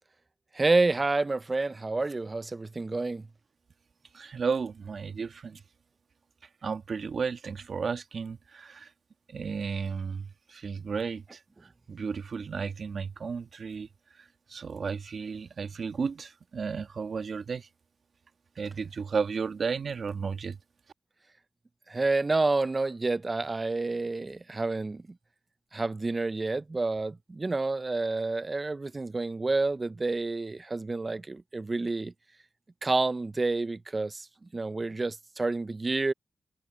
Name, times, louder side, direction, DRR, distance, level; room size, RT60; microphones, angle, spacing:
voice 1, 0.5-3.3 21.9-25.0 25.7-32.1 32.8-34.3 34.5-36.1, right 3 dB, 40° right, 0.5 m, -29 dB
voice 2, 4.1-5.6 6.6-8.9 9.3-13.9 14.1-17.7 18.6-20.6, right 5 dB, 65° right, 1.4 m, -33 dB
cardioid pair, 45°, 0 cm